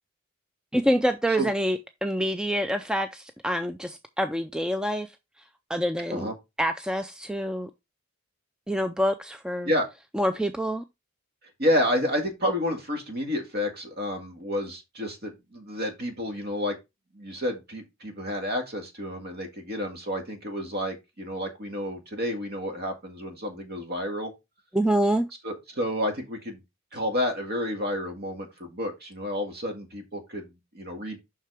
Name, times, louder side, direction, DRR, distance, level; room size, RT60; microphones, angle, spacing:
voice 1, 0.7-5.1 5.7-6.3 6.6-7.7 8.7-9.7 10.1-10.8 24.7-25.3, equal, 5° right, 0.3 m, -26 dB
voice 2, 11.6-16.8 17.1-24.3 25.4-26.6 26.9-31.2, equal, 45° right, 1.9 m, -30 dB
7.4 x 5.8 x 3.4 m
head